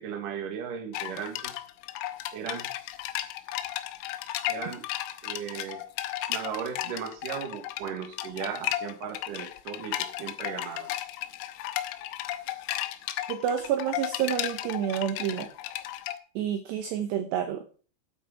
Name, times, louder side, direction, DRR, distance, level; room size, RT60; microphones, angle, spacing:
voice 1, 0.0-1.6 2.3-2.7 4.5-4.9 5.2-5.8 6.3-10.9, right 8 dB, 55° right, 5 dB, 2.7 m, -36 dB
sound 1, 0.9-16.2, left 14 dB, 90° left, 3.3 m, -34 dB
voice 2, 13.3-15.5 16.4-17.6, right 9 dB, 75° right, 7 dB, 2.7 m, -29 dB
9.2 x 8.2 x 6.0 m, 0.40 s
omnidirectional pair, 5.7 m